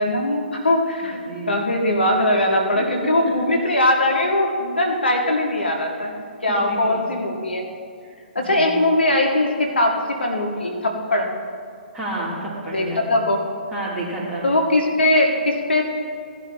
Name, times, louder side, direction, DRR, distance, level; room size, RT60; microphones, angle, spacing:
voice 1, 0.0-1.2 1.5-6.1 6.4-7.7 8.4-11.3 12.7-13.4 14.4-15.9, left 1 dB, 75° left, 1 dB, 1.8 m, -20 dB
voice 2, 1.2-1.6 2.7-2.9 6.5-7.0 8.5-8.7 11.9-13.2 13.7-14.5, right 1 dB, 15° right, -6 dB, 3.1 m, -30 dB
17.5 x 11.0 x 2.9 m, 2.3 s
figure-of-eight pair, 125°, 6 cm